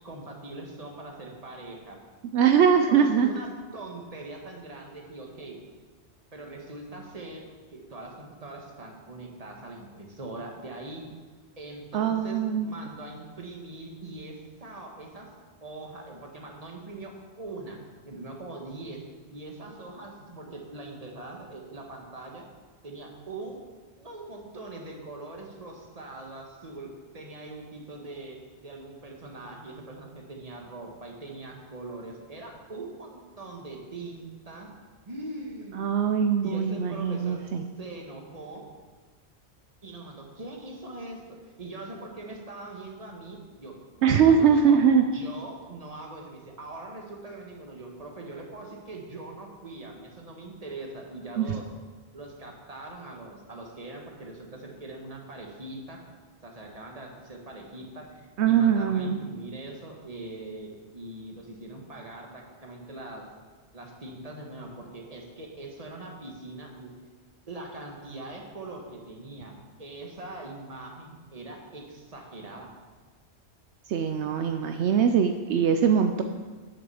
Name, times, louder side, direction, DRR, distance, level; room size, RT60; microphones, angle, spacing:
voice 1, 0.0-2.0 2.6-3.5 3.7-5.6 6.3-11.0 11.6-15.3 15.6-17.8 18.0-19.0 19.3-22.5 22.8-23.6 24.0-26.9 27.1-28.4 28.6-34.7 35.0-35.8 36.4-37.4 37.8-38.6 39.8-51.6 52.1-56.0 56.4-63.3 63.7-66.9 67.5-69.5 69.8-72.7, right 2 dB, 35° right, 1 dB, 1.6 m, -42 dB
voice 2, 2.3-3.3 11.9-12.8 35.8-37.6 44.0-45.0 51.4-51.5 58.4-59.2 73.9-76.2, right 7 dB, 75° right, 6 dB, 0.9 m, -22 dB
8.4 x 6.8 x 7.0 m, 1.4 s
omnidirectional pair, 1.2 m